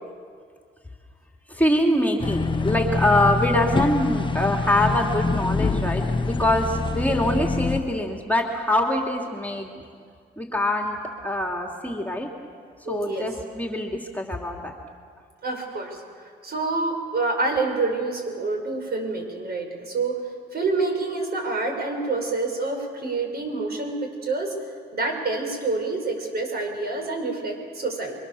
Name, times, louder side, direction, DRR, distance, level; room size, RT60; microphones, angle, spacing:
voice 1, 1.5-9.8 10.4-11.0 11.2-12.3 12.9-14.7, left 1 dB, 10° left, 1 dB, 2.9 m, -24 dB
sound 1, 2.2-7.8, left 3 dB, 25° left, 1.1 m, -25 dB
voice 2, 12.8-13.3 15.4-20.2 20.5-24.5 24.9-28.1, right 3 dB, 50° right, 3 dB, 6.4 m, -27 dB
29.0 x 23.5 x 7.1 m, 2.1 s
cardioid pair, 90°, 20 cm